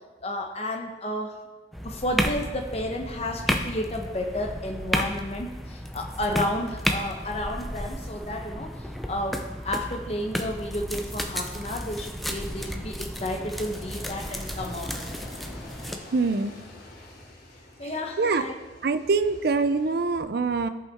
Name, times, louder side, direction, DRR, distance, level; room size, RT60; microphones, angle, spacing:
voice 1, 0.2-1.4 1.8-15.0 17.8-18.5, left 1 dB, 35° left, 3 dB, 1.0 m, -32 dB
sound 1, 1.7-16.0, equal, ahead, 0.5 m, -33 dB
Aircraft, 13.5-20.2, left 1 dB, 50° left, 1.9 m, -46 dB
voice 2, 16.1-16.5 17.8-17.9 18.2-18.4 18.8-20.7, right 4 dB, 60° right, 11 dB, 0.5 m, -24 dB
14.5 x 5.5 x 3.5 m, 1.2 s
head